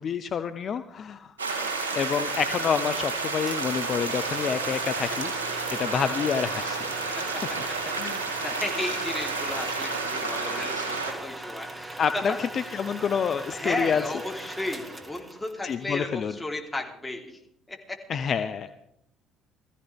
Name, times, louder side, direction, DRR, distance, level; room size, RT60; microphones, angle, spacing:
voice 1, 0.0-1.3 1.9-5.3 5.8-6.8 8.0-8.2 12.0-14.0 15.6-16.3 18.1-18.7, left 7 dB, 45° left, 10 dB, 0.6 m, -28 dB
sound 1, 1.4-11.1, right 3 dB, 85° right, 2.2 m, -31 dB
sound 2, 3.5-15.8, right 2 dB, 20° right, 2.2 m, -40 dB
voice 2, 8.0-12.7 13.5-17.4 17.7-18.0, left 2 dB, 10° left, 0 dB, 3.6 m, -34 dB
19.5 x 14.5 x 3.5 m, 0.78 s
figure-of-eight pair, 55°, 0 cm